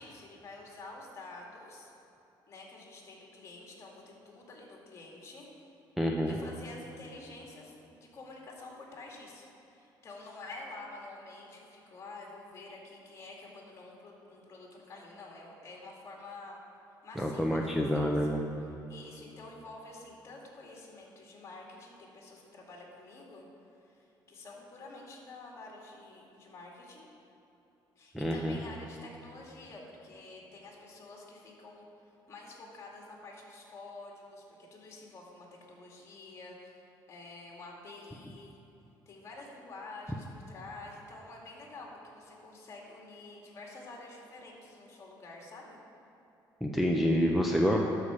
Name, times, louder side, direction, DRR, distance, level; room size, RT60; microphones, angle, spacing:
voice 1, 0.0-1.9 2.5-5.5 6.3-16.6 17.0-18.4 18.9-23.5 23.8-27.1 28.0-36.7 37.1-38.6 39.1-45.8, left 2 dB, 35° left, -2 dB, 2.2 m, -49 dB
voice 2, 6.0-6.4 17.2-18.4 28.1-28.6 46.6-47.8, equal, ahead, -1 dB, 0.6 m, -27 dB
12.0 x 4.9 x 6.9 m, 3.0 s
cardioid pair, 135°, 8 cm